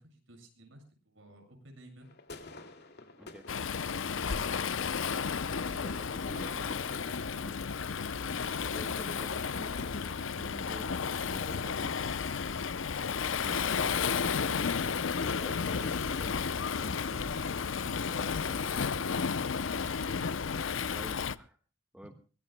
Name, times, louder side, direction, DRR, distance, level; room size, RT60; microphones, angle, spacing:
voice 1, 0.0-2.1 4.0-5.3 5.6-6.0 6.3-6.8 7.0-7.2 12.9-13.1 17.1-17.6 17.9-19.3 22.0-22.1, right 1 dB, 90° right, 4 dB, 7.5 m, -54 dB
sound 1, 2.0-21.4, left 3 dB, 60° left, 2.4 m, -54 dB
Waves surf, 3.5-21.4, left 6 dB, 85° left, 0.7 m, -32 dB
voice 2, 5.7-6.9 7.4-7.6 8.7-12.0 13.4-17.4 18.1-18.7 20.9-21.6 21.9-22.1, equal, 5° right, 6 dB, 1.6 m, -49 dB
23.5 x 20.0 x 2.2 m, 0.37 s
head